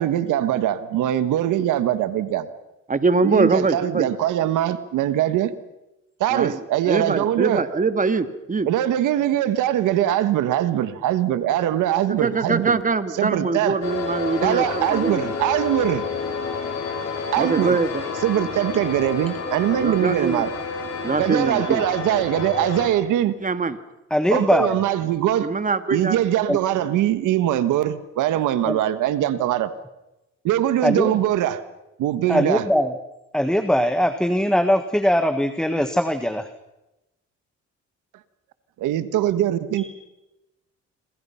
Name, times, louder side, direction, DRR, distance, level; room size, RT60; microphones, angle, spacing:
voice 1, 0.0-2.5 3.2-5.5 6.2-7.6 8.6-12.8 13.2-13.8 14.4-16.0 17.3-17.8 18.2-20.5 21.2-23.3 24.3-25.5 25.9-29.7 30.4-31.6 32.0-32.6 38.8-39.8, right 12 dB, 90° right, 12 dB, 1.6 m, -22 dB
voice 2, 2.9-4.1 6.3-8.7 12.1-15.3 17.4-18.0 19.8-20.4 21.0-21.8 23.4-23.8 25.4-26.2, right 4 dB, 25° right, 10 dB, 1.9 m, -23 dB
sound 1, 13.8-22.9, left 5 dB, 60° left, 5.6 m, -30 dB
voice 3, 24.1-24.8 26.5-26.6 28.7-28.8 30.8-31.2 32.3-33.0 33.3-36.5, equal, ahead, 9 dB, 1.6 m, -21 dB
27.0 x 26.5 x 5.8 m, 0.94 s
cardioid pair, 90°, 30 cm